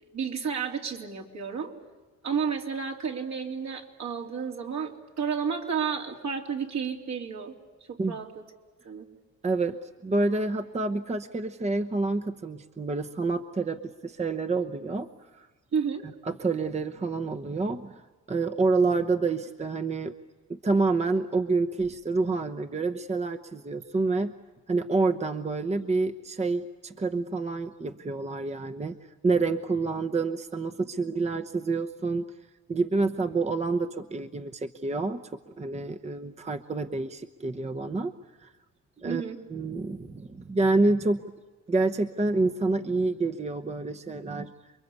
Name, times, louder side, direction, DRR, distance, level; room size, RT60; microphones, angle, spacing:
voice 1, 0.1-1.7 2.2-7.5 7.9-8.3 8.8-9.0 15.7-16.0 39.0-39.4, right 6 dB, 65° right, 1 dB, 3.4 m, -31 dB
voice 2, 9.4-15.1 15.3-15.5 16.3-18.0 18.3-20.1 20.5-24.3 24.7-29.0 29.2-32.3 32.7-35.2 35.6-38.1 38.4-38.5 39.0-39.2 39.5-41.2 41.7-44.5, right 3 dB, 20° right, 8 dB, 1.0 m, -28 dB
29.0 x 22.5 x 8.2 m, 1.3 s
cardioid pair, 90°, 30 cm